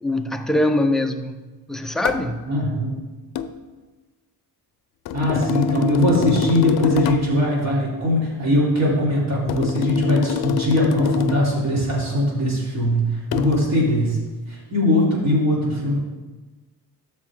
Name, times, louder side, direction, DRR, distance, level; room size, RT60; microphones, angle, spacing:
voice 1, 0.0-2.5, left 1 dB, ahead, 0.6 m, -23 dB
sound 1, 2.0-2.3 3.4-3.6 5.1-7.4 9.5-11.6 13.3-13.6, left 9 dB, 60° left, 0.7 m, -25 dB
voice 2, 2.5-3.0 5.1-14.2 14.5-16.0, left 1 dB, 40° right, 3.5 m, -20 dB
12.5 x 6.9 x 3.7 m
cardioid pair, 110°, 42 cm